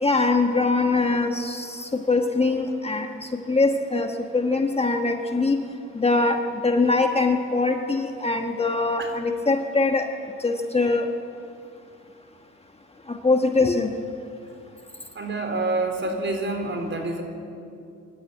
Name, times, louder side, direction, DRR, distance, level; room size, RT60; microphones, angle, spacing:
voice 1, 0.0-5.6 5.9-6.4 6.6-10.1 10.4-11.1 13.1-13.9, left 3 dB, 20° left, 4 dB, 1.4 m, -22 dB
voice 2, 15.1-17.2, right 2 dB, 40° right, 4 dB, 4.2 m, -27 dB
22.5 x 12.5 x 9.7 m, 2.5 s
cardioid pair, 90°, 30 cm